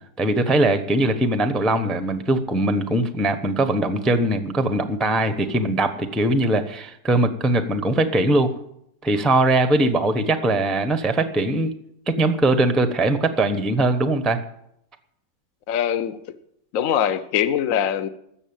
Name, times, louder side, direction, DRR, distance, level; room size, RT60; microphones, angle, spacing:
voice 1, 0.2-8.5 9.0-11.7 12.1-14.4, right 2 dB, ahead, 9 dB, 0.5 m, -21 dB
voice 2, 15.7-16.2 16.7-18.1, left 9 dB, 55° left, 12 dB, 1.1 m, -22 dB
13.5 x 7.9 x 8.8 m, 0.75 s
omnidirectional pair, 2.0 m